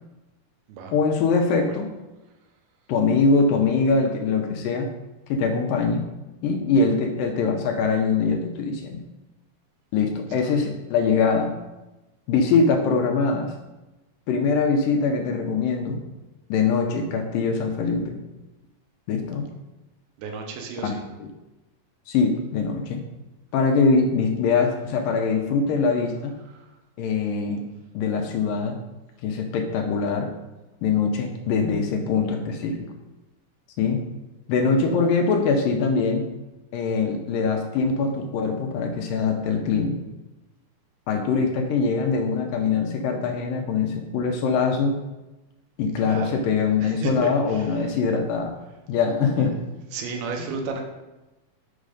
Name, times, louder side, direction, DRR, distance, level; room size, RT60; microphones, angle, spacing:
voice 1, 0.9-1.9 2.9-4.9 5.3-6.0 6.4-9.0 9.9-11.5 12.3-13.5 14.3-16.0 16.5-18.2 19.1-19.5 21.2-21.3 22.1-23.0 23.5-26.3 27.0-27.7 27.9-28.8 29.2-30.3 30.8-32.9 33.8-34.0 34.5-36.2 36.7-40.0 41.1-45.0 45.8-48.6 48.9-49.5, left 4 dB, 80° left, 3 dB, 2.2 m, -23 dB
voice 2, 20.2-21.0 26.4-26.7 46.0-46.4 46.8-47.9 49.4-49.5 49.9-50.8, right 4 dB, 85° right, 2 dB, 2.9 m, -33 dB
6.5 x 5.1 x 4.9 m, 1.0 s
omnidirectional pair, 4.3 m